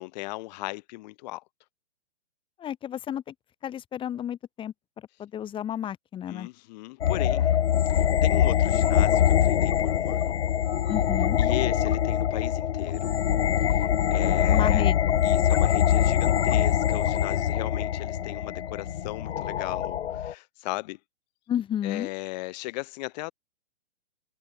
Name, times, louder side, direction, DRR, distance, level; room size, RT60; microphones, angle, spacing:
voice 1, 0.0-1.4 6.3-7.6 7.9-10.3 11.4-13.1 13.7-14.9 15.2-21.0 21.8-23.3, left 21 dB, 40° left, 6.6 m, -37 dB
voice 2, 2.6-3.3 3.6-4.7 5.2-6.5 10.9-11.4 14.5-15.0 21.5-22.1, left 10 dB, 15° left, 2.1 m, -32 dB
sound 1, 7.0-20.3, left 10 dB, 75° left, 1.2 m, -23 dB
hypercardioid pair, 150°, 33 cm